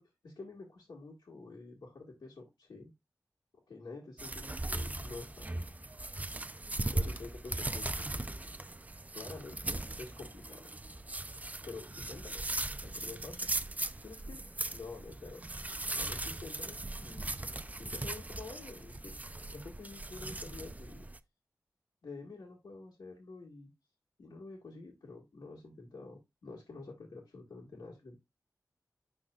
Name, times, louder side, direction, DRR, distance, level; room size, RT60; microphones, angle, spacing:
voice 1, 0.2-2.9 3.7-5.7 6.9-8.3 9.1-10.7 11.6-12.5 12.8-13.5 14.0-14.4 14.7-15.5 15.9-17.3 17.8-21.1 22.0-23.7 24.2-28.2, left 3 dB, 85° left, -4 dB, 1.9 m, -48 dB
sound 1, 4.2-21.2, right 2 dB, 25° right, 0.5 m, -39 dB
11.0 x 3.8 x 2.4 m, 0.21 s
wide cardioid pair, 60°, 7 cm